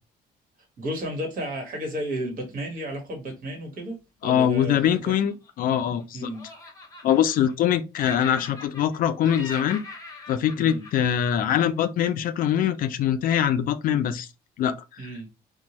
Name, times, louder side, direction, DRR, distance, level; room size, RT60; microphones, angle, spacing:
voice 1, 0.8-5.0 6.1-6.4 10.6-10.9 15.0-15.3, equal, 55° right, 1.4 m, -33 dB
voice 2, 4.2-6.3 7.0-9.8 10.3-14.3 14.6-15.1, left 9 dB, 55° left, 0.4 m, -23 dB
Laughter, 4.8-6.0 6.3-7.7 8.0-9.0 9.2-11.8, left 3 dB, 20° left, 0.9 m, -42 dB
2.6 x 2.2 x 2.9 m
cardioid pair, 110°, 17 cm